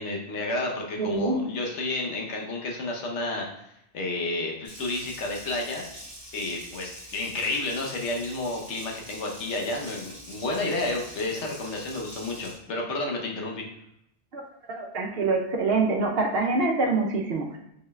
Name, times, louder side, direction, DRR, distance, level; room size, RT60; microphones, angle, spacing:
voice 1, 0.0-5.8 6.3-13.6, left 2 dB, 75° left, 0 dB, 1.2 m, -31 dB
voice 2, 1.0-1.4 14.3-14.4 14.8-17.6, right 3 dB, 60° right, 1 dB, 0.9 m, -25 dB
Water tap faucet, 4.6-12.5, equal, 20° right, 1.8 m, -44 dB
5.2 x 4.3 x 2.3 m, 0.78 s
omnidirectional pair, 1.2 m